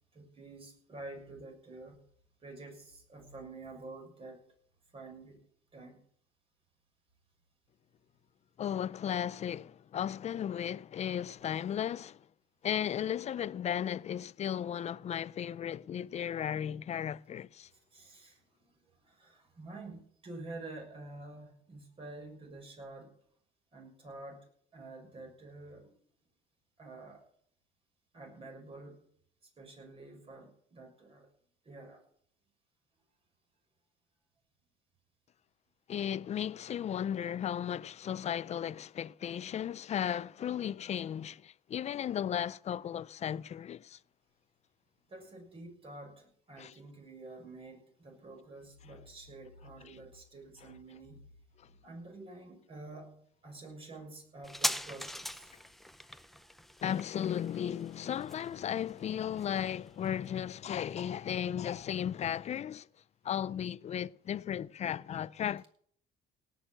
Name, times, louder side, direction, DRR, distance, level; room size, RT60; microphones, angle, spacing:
voice 1, 0.1-2.0 2.4-4.5 4.9-5.4 5.7-6.0 11.3-11.5 17.7-23.1 23.7-24.5 24.7-26.0 26.8-27.2 28.1-29.1 29.6-31.3 31.6-32.0 45.1-51.3 51.8-55.6 56.1-56.5, right 2 dB, 35° right, 6.3 m, -49 dB
voice 2, 8.6-12.3 12.6-17.7 35.9-44.0 46.6-46.7 56.8-62.9 63.2-65.6, left 9 dB, 40° left, 0.5 m, -35 dB
sound 1, 54.4-61.5 61.8-61.9, equal, ahead, 0.7 m, -41 dB
18.0 x 6.8 x 8.9 m
cardioid pair, 110°, 17 cm